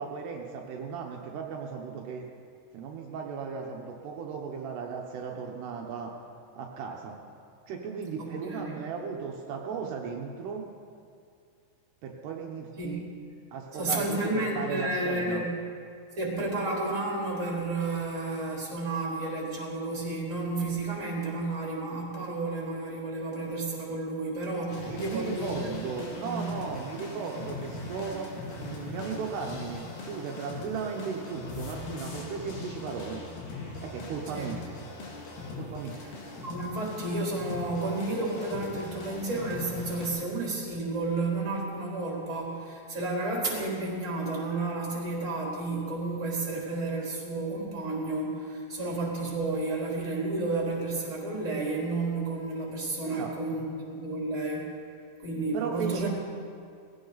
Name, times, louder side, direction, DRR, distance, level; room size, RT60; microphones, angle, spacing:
voice 1, 0.0-2.3 2.7-6.1 6.6-7.2 7.7-10.6 12.0-13.0 13.5-15.5 24.9-28.3 28.6-33.2 33.8-34.6 35.6-36.0 53.0-53.3 55.5-56.1, right 6 dB, 75° right, 0 dB, 3.0 m, -36 dB
voice 2, 8.2-8.8 12.8-12.9 13.7-15.5 16.2-26.5 34.3-34.5 36.0-36.1 36.4-54.6 55.2-56.1, right 2 dB, 20° right, -4 dB, 3.6 m, -31 dB
sound 1, 24.7-40.1, left 2 dB, 60° left, 3.7 m, -40 dB
19.5 x 16.0 x 4.0 m, 2.3 s
omnidirectional pair, 4.9 m